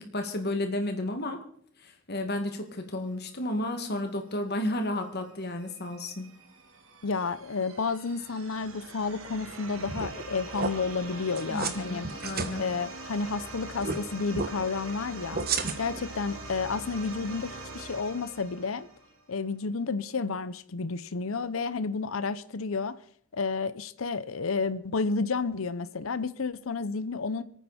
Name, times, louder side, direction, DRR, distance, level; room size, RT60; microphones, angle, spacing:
voice 1, 0.0-1.4 1.8-6.3 11.5-12.6, left 1 dB, 50° left, 2.2 m, -32 dB
sound 1, 5.5-19.3, right 2 dB, 80° right, 2.4 m, -43 dB
voice 2, 7.0-12.1 12.6-15.4 15.8-18.9 19.3-23.0 23.3-27.4, left 4 dB, 80° left, 0.7 m, -31 dB
sound 2, 9.9-10.2 10.5-10.7 11.4-11.8 12.0-12.5 13.8-14.0 14.3-14.5 15.3-16.0, right 5 dB, 50° right, 1.3 m, -31 dB
26.5 x 9.2 x 4.3 m
head